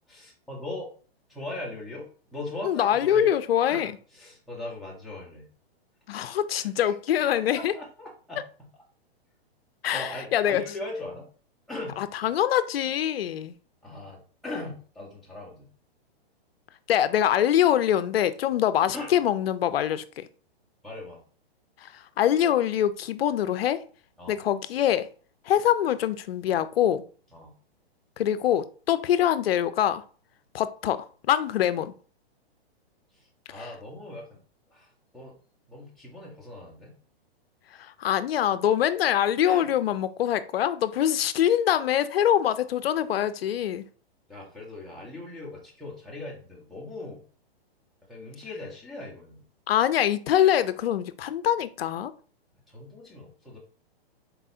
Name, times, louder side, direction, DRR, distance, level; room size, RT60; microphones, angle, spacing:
voice 1, 0.1-0.9 1.3-3.3 3.7-5.5 6.5-6.7 7.2-8.4 9.9-11.3 11.7-12.0 13.8-15.7 18.9-19.2 20.8-21.2 24.2-24.4 27.3-27.5 33.1-34.4 34.7-35.3 35.7-36.9 39.4-39.7 44.3-47.2 48.1-49.4 52.7-53.6, left 2 dB, ahead, 1.2 m, -39 dB
voice 2, 2.6-3.9 6.1-7.7 9.8-10.6 12.0-13.5 16.9-20.3 21.8-23.8 24.3-25.1 25.4-27.0 28.2-30.0 30.5-31.9 33.5-33.6 37.7-43.8 49.7-52.1, left 10 dB, 70° left, 0.6 m, -24 dB
4.2 x 3.8 x 2.8 m
hypercardioid pair, 145°, 31 cm